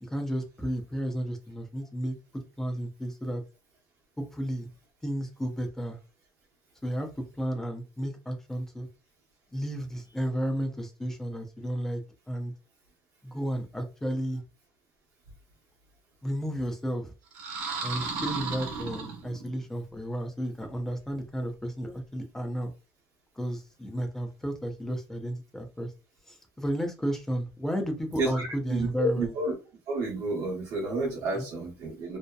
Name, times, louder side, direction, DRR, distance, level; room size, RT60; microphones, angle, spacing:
voice 1, 0.0-3.4 4.2-4.7 5.0-6.0 6.8-7.1 7.4-8.9 9.5-12.0 12.3-12.5 13.2-14.4 16.2-17.1 17.8-22.7 23.4-25.9 26.3-29.3 31.3-31.5, equal, 5° left, 4 dB, 0.6 m, -32 dB
sound 1, 17.3-19.6, right 4 dB, 85° right, 0.9 m, -34 dB
voice 2, 28.2-29.6 29.9-32.2, right 2 dB, 60° right, -2 dB, 1.0 m, -30 dB
2.7 x 2.1 x 2.3 m, 0.30 s
cardioid pair, 130°, 7 cm